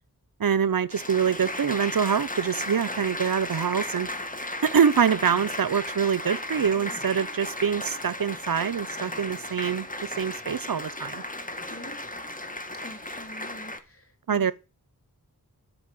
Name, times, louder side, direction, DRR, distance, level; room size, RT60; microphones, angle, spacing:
voice 1, 0.4-4.1 4.6-11.2 14.3-14.5, right 7 dB, 70° right, 0.7 m, -25 dB
Applause, 0.9-13.8, left 1 dB, 20° left, 1.7 m, -35 dB
voice 2, 11.7-12.0 12.8-14.5, left 1 dB, 40° left, 4.0 m, -45 dB
13.5 x 5.2 x 8.9 m
wide cardioid pair, 55°, 36 cm